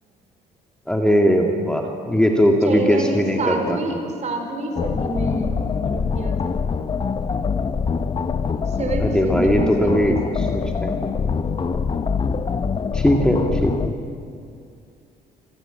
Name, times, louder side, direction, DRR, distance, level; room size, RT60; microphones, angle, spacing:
voice 1, 0.9-3.8 9.0-10.5 10.8-11.1 12.9-14.0, equal, 5° left, 2 dB, 1.9 m, -19 dB
voice 2, 2.6-5.4 5.8-6.6 8.7-10.5, right 2 dB, 45° right, 4 dB, 4.4 m, -28 dB
sound 1, 4.8-13.9, left 5 dB, 30° left, 0.9 m, -24 dB
25.5 x 14.5 x 8.9 m, 2.5 s
cardioid pair, 110°, 17 cm